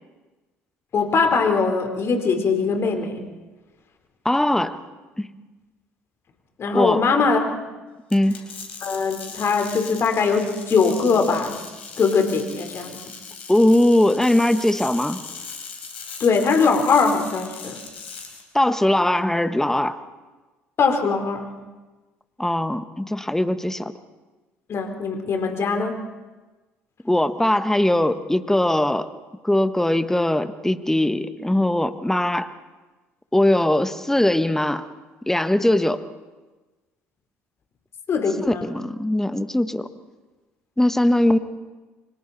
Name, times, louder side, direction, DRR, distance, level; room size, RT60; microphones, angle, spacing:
voice 1, 0.9-3.2 6.6-7.5 8.8-11.6 12.0-13.0 16.2-17.8 20.8-21.5 24.7-26.0 38.1-38.7, left 4 dB, 45° left, 4 dB, 4.0 m, -21 dB
voice 2, 4.2-4.8 5.2-5.3 6.7-7.0 8.1-8.4 13.5-15.2 18.5-20.0 22.4-23.9 27.0-29.1 29.4-32.5 33.3-34.9 35.3-36.0 38.4-39.9 40.8-41.4, left 1 dB, 5° left, 11 dB, 1.5 m, -20 dB
sound 1, 8.1-18.4, left 5 dB, 85° left, 4.3 m, -39 dB
29.5 x 25.0 x 4.2 m, 1.2 s
hypercardioid pair, 60°, 6 cm